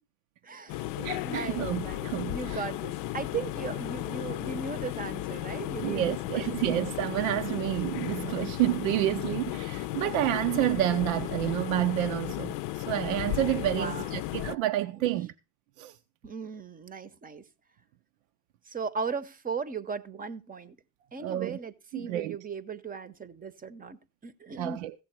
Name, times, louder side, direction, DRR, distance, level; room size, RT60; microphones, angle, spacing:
voice 1, 0.4-0.9 1.2-6.7 13.7-14.2 16.2-17.5 18.7-20.8 21.1-24.9, right 5 dB, 20° right, 0.8 m, -37 dB
sound 1, 0.7-14.5, left 15 dB, 60° left, 0.6 m, -35 dB
voice 2, 1.0-2.7 5.8-15.3 15.8-16.0 21.2-21.6 21.9-22.4 24.6-24.9, right 14 dB, 80° right, 0.6 m, -29 dB
15.5 x 7.5 x 4.3 m
supercardioid pair, 95°, 40 cm